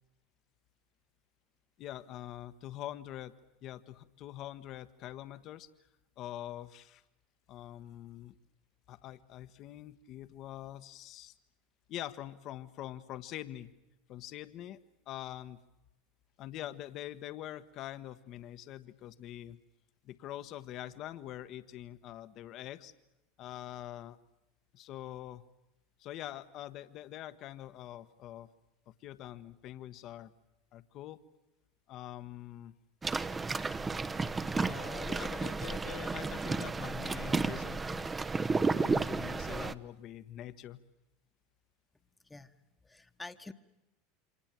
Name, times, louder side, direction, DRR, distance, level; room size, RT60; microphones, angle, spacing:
voice 1, 1.8-3.3 3.6-5.7 6.2-7.0 7.5-8.3 8.9-11.3 11.9-13.7 14.1-14.8 15.1-15.6 16.4-19.6 20.0-22.9 23.4-24.2 24.7-25.4 26.0-28.5 29.0-30.3 30.7-31.2 31.9-32.7 34.5-38.1 38.7-40.8, left 13 dB, 50° left, 13 dB, 1.3 m, -44 dB
sound 1, 33.0-39.7, right 4 dB, 20° right, 1.0 m, -33 dB
voice 2, 42.2-42.6 42.8-43.5, left 2 dB, 10° left, 9 dB, 1.4 m, -47 dB
28.5 x 25.5 x 7.6 m, 0.95 s
hypercardioid pair, 90°, 0 cm